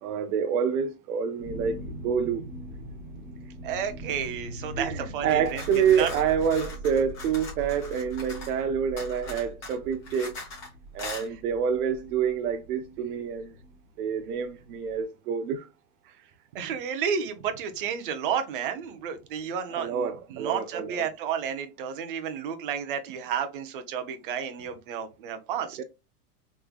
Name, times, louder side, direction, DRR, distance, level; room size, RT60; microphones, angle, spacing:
voice 1, 0.0-2.4 4.8-10.4 10.9-13.5 14.0-15.7 19.8-21.1 25.8-25.9, right 7 dB, 90° right, 0.6 m, -27 dB
sound 1, 1.4-15.0, right 1 dB, 5° right, 0.9 m, -42 dB
voice 2, 3.6-6.1 11.3-11.4 16.1-16.2 16.5-25.8, right 7 dB, 40° right, 0.5 m, -32 dB
sound 2, 5.3-8.6 9.0-10.7 11.0-11.3, left 3 dB, 30° left, 1.5 m, -41 dB
3.6 x 3.2 x 2.2 m
supercardioid pair, 170°, 44 cm